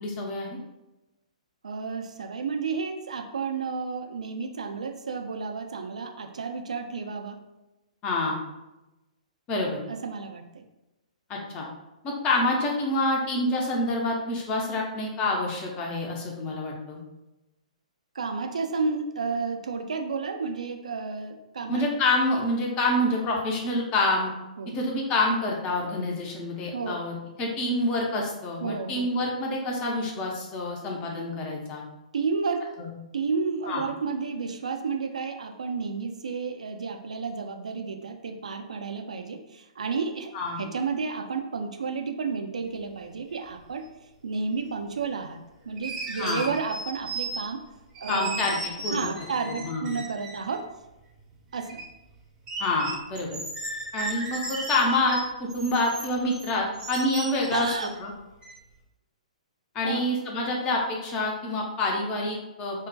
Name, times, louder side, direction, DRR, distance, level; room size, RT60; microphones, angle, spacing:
voice 1, 0.0-0.6 8.0-8.4 9.5-9.8 11.3-11.7 12.0-17.0 21.7-24.3 24.7-31.8 32.8-32.9 33.7-33.8 40.3-40.6 46.2-46.5 48.1-49.1 49.4-49.9 52.6-53.3 53.9-57.7 58.0-58.1 59.7-62.9, left 2 dB, 25° left, -1 dB, 0.6 m, -27 dB
voice 2, 1.6-7.4 9.9-10.6 18.2-21.8 24.6-24.8 26.7-27.0 28.6-29.1 32.1-32.7 33.1-43.9 44.2-47.6 48.0-48.5 48.9-50.6 51.5-51.8 57.5-57.9 59.8-60.0, right 5 dB, 70° right, 5 dB, 0.3 m, -31 dB
sound 1, 43.6-43.7 45.7-47.7 47.9-50.6 51.2-51.8 52.1-52.2 52.5-58.0 58.4-58.5, right 2 dB, 20° right, 0.6 m, -36 dB
2.3 x 2.1 x 3.8 m, 1.0 s
figure-of-eight pair, 115°, 4 cm